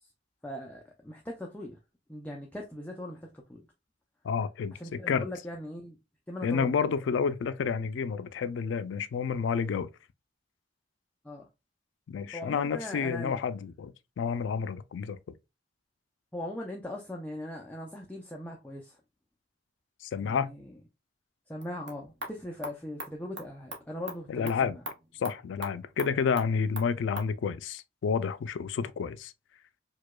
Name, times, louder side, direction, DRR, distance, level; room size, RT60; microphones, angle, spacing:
voice 1, 0.4-1.8 2.1-3.7 4.7-6.0 6.3-6.7 11.2-11.5 12.3-13.3 16.3-19.0 20.2-20.7 21.5-24.8, left 1 dB, 10° left, 0.4 m, -40 dB
voice 2, 4.2-5.3 6.4-9.9 12.1-15.3 20.0-20.5 24.3-24.8 25.1-29.3, left 6 dB, 80° left, 0.3 m, -30 dB
sound 1, 21.5-27.3, right 1 dB, 70° right, 0.9 m, -43 dB
4.7 x 2.2 x 2.2 m
head